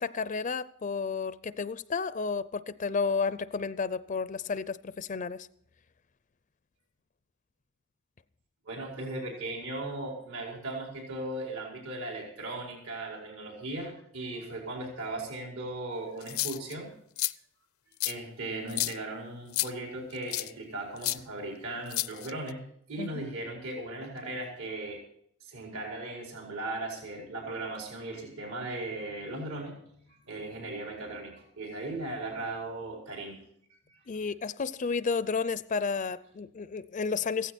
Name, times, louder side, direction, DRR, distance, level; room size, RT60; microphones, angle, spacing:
voice 1, 0.0-5.5 23.0-23.3 34.1-37.5, left 5 dB, 35° left, 0.5 m, -32 dB
voice 2, 8.6-16.9 18.0-22.6 22.9-25.0 25.4-29.7 30.2-33.4 33.7-34.0, right 2 dB, 80° right, 4.9 m, -37 dB
sound 1, 16.2-16.7 17.2-17.3 18.0-18.1 18.7-18.9 19.5-19.7 20.3-20.5 21.0-21.2 21.9-22.5, left 17 dB, 80° left, 0.6 m, -30 dB
16.5 x 15.0 x 4.3 m
head